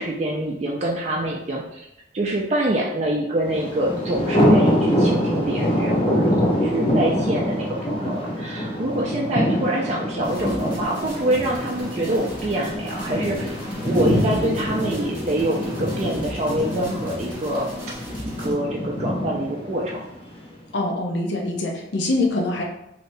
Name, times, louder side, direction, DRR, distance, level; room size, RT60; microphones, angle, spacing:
voice 1, 0.0-1.9 2.1-17.7 18.2-20.0, right 1 dB, 35° right, -3 dB, 0.4 m, -25 dB
Thunder, 3.5-20.5, equal, 30° left, 0.6 m, -25 dB
sound 1, 10.2-18.5, equal, 10° right, 1.0 m, -38 dB
voice 2, 20.7-22.6, left 2 dB, 70° left, 0 dB, 0.6 m, -24 dB
3.3 x 2.8 x 2.6 m, 0.82 s
head